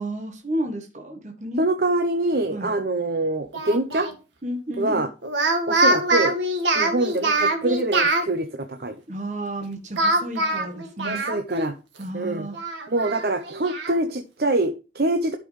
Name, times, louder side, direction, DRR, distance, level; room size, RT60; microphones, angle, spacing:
voice 1, 0.0-1.6 2.5-2.8 4.4-5.0 9.1-11.3 12.0-12.6, right 1 dB, 40° right, 3 dB, 1.4 m, -32 dB
voice 2, 1.6-4.1 4.8-5.1 5.7-6.4 6.7-9.0 11.0-11.7 12.1-12.5 12.9-15.4, right 2 dB, 55° right, 7 dB, 0.8 m, -24 dB
Speech, 3.5-4.1 5.2-8.3 10.0-11.7 12.0-12.1 12.5-14.0, right 2 dB, 85° right, 2.0 m, -24 dB
12.5 x 6.0 x 3.2 m, 0.32 s
head